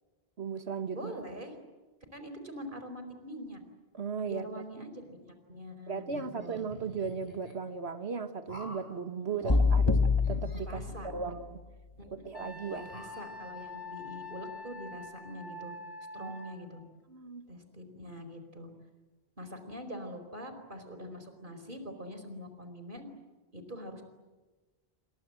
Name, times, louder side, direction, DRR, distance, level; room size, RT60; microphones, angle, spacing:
voice 1, 0.4-1.1 3.9-4.9 5.9-10.0 10.3-10.8 11.1-11.6 12.2-12.9 16.2-16.3 17.1-17.5, right 5 dB, 85° right, 9 dB, 1.9 m, -36 dB
voice 2, 0.9-1.6 2.1-3.6 4.2-6.7 9.2-9.6 10.6-11.1 12.2-15.8 16.1-16.8 17.5-18.7 19.4-23.1 23.5-24.0, equal, 50° right, 7 dB, 4.9 m, -44 dB
sound 1, 6.1-7.6 8.5-8.9 9.4-9.6 10.2-11.5 12.0-12.1 12.7-13.7, right 1 dB, 70° right, 5.0 m, -47 dB
sound 2, 9.5-11.6, left 4 dB, 25° left, 1.5 m, -27 dB
Wind instrument woodwind instrument, 12.3-16.6, left 2 dB, 70° left, 4.4 m, -45 dB
29.0 x 25.5 x 7.8 m, 1.2 s
omnidirectional pair, 1.1 m